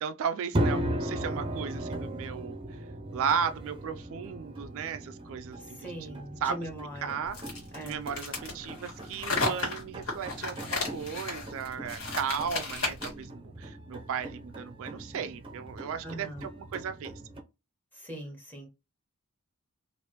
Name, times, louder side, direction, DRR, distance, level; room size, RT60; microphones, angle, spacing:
voice 1, 0.0-2.8 3.1-6.6 7.0-17.1, right 7 dB, 65° right, 0.3 m, -35 dB
sound 1, 0.5-17.4, right 1 dB, 25° right, 0.6 m, -38 dB
voice 2, 5.6-7.2 7.7-8.0 16.0-16.4 17.9-18.7, right 1 dB, 10° left, 1.2 m, -41 dB
sound 2, 7.3-13.2, left 3 dB, 65° left, 1.6 m, -33 dB
3.3 x 2.5 x 2.9 m
head